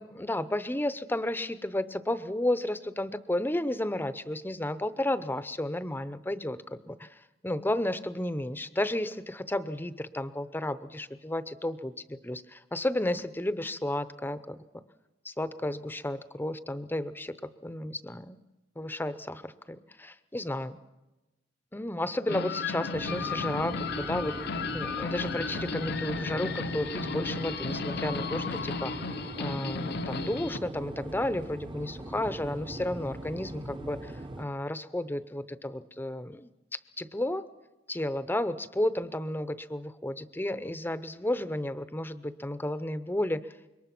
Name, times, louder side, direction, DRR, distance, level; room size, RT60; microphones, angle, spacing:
voice 1, 0.0-14.6 15.2-17.4 17.6-18.4 18.8-20.8 21.7-28.9 29.4-37.4 37.9-43.6, left 1 dB, 10° left, 13 dB, 0.7 m, -32 dB
sound 1, 22.3-30.6, left 4 dB, 60° left, 0.7 m, -34 dB
sound 2, 22.9-34.4, right 1 dB, 25° right, 0.8 m, -41 dB
26.0 x 22.5 x 6.0 m, 1.1 s
head